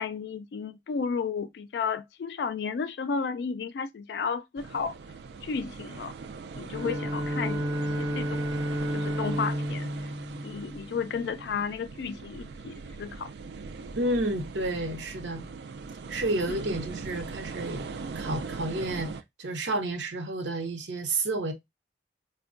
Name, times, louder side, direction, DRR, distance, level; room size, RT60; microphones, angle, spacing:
voice 1, 0.0-4.9 5.4-6.1 6.6-8.4 8.9-9.9 10.4-13.3 16.5-16.6, left 5 dB, 65° left, 0.3 m, -33 dB
sound 1, 4.6-19.2, right 4 dB, 65° right, 0.3 m, -40 dB
Bowed string instrument, 6.7-11.3, equal, 25° right, 0.6 m, -32 dB
voice 2, 14.0-15.5 16.1-17.9 18.1-19.1 19.4-21.5, right 2 dB, 85° right, 0.8 m, -30 dB
4.3 x 2.2 x 2.4 m
head